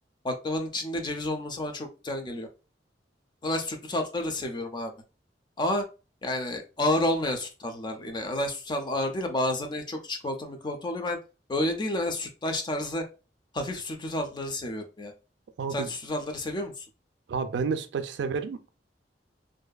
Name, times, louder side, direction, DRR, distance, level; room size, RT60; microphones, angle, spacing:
voice 1, 0.2-2.5 3.4-4.9 5.6-5.8 6.2-11.2 11.5-13.0 13.5-15.1 15.7-16.9, left 1 dB, 25° left, 0.4 m, -30 dB
voice 2, 15.6-15.9 17.3-18.7, right 5 dB, 70° right, 0.3 m, -30 dB
2.6 x 2.3 x 2.2 m
head